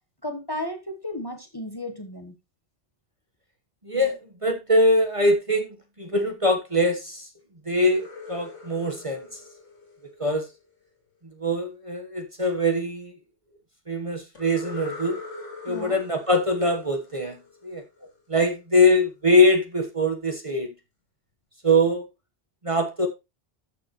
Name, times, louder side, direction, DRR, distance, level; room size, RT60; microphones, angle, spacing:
voice 1, 0.2-2.3 15.7-16.0 18.0-18.1, left 1 dB, 20° left, 1.2 m, -34 dB
voice 2, 3.8-7.3 7.7-9.4 10.2-10.5 11.2-13.1 13.9-15.2 15.6-17.4 17.6-17.8 18.3-20.7 21.6-22.1 22.6-23.1, left 1 dB, 30° right, 1.2 m, -23 dB
sound 1, 7.7-10.7 14.3-18.1, left 3 dB, 80° left, 3.0 m, -42 dB
12.5 x 6.7 x 3.0 m
omnidirectional pair, 1.2 m